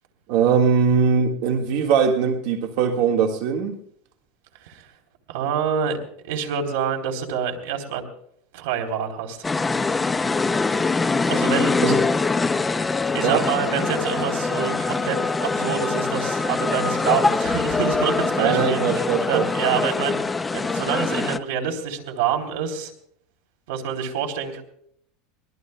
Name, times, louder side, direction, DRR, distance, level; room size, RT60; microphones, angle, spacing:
voice 1, 0.3-3.8 11.8-11.9 13.2-13.4 18.4-19.4, right 6 dB, 60° right, 3 dB, 1.7 m, -20 dB
voice 2, 5.3-6.0 6.2-8.1 8.5-9.4 11.3-11.8 13.1-19.0 19.3-22.9 23.7-24.6, right 7 dB, 75° right, 4 dB, 3.5 m, -27 dB
sound 1, 9.4-21.4, left 3 dB, 10° left, 0.5 m, -23 dB
24.0 x 19.5 x 2.2 m, 0.67 s
supercardioid pair, 165°, 0 cm